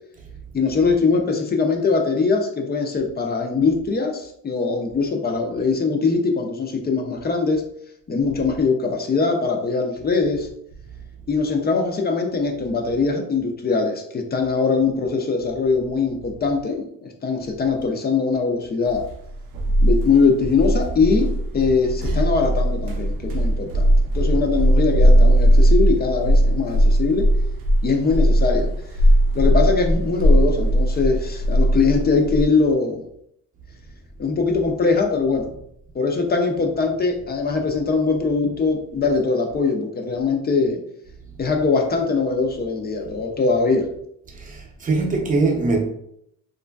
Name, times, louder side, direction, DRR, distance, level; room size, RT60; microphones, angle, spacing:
voice 1, 0.5-7.6 8.1-10.5 11.3-19.0 19.8-27.3 27.8-28.7 29.3-33.0 34.2-35.5 35.9-40.8 41.4-43.9, left 4 dB, 30° left, 0.4 m, -21 dB
sound 1, 19.0-32.5, equal, 90° right, 0.5 m, -18 dB
voice 2, 44.3-45.8, right 3 dB, 25° right, 0.6 m, -22 dB
2.9 x 2.5 x 2.2 m
cardioid pair, 135°, 32 cm